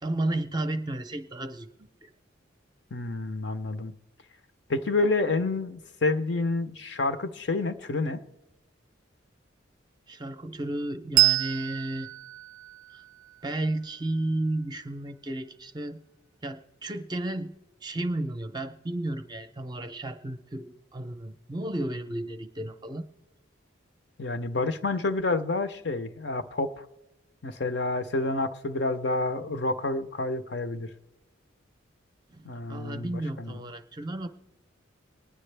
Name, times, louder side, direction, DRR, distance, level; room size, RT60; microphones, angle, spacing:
voice 1, 0.0-2.1 10.1-12.1 12.9-13.0 13.4-16.0 16.4-17.5 17.8-23.1 32.3-34.3, right 1 dB, 20° right, 0.5 m, -33 dB
voice 2, 2.9-3.9 4.7-8.2 24.2-26.8 27.4-30.9 32.4-33.5, left 3 dB, 55° left, 0.6 m, -29 dB
Bell, 11.1-14.2, right 21 dB, 85° right, 0.3 m, -28 dB
23.5 x 9.8 x 3.3 m
head